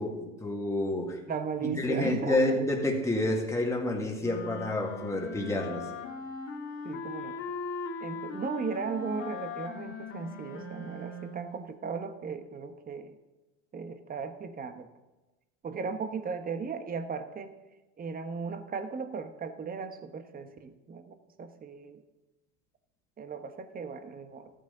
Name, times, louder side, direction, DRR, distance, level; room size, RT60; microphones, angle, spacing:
voice 1, 0.0-1.2 1.6-5.9, left 1 dB, 10° left, 0 dB, 2.0 m, -29 dB
voice 2, 1.3-2.5 6.8-7.4 8.0-13.2 13.7-14.9 15.6-17.5 18.0-22.0 23.2-24.5, right 5 dB, 25° right, 9 dB, 1.1 m, -37 dB
Clarinet - F major, 4.2-11.5, left 3 dB, 40° left, 2.3 m, -39 dB
14.0 x 9.3 x 3.9 m, 1.1 s
hypercardioid pair, 100°, 36 cm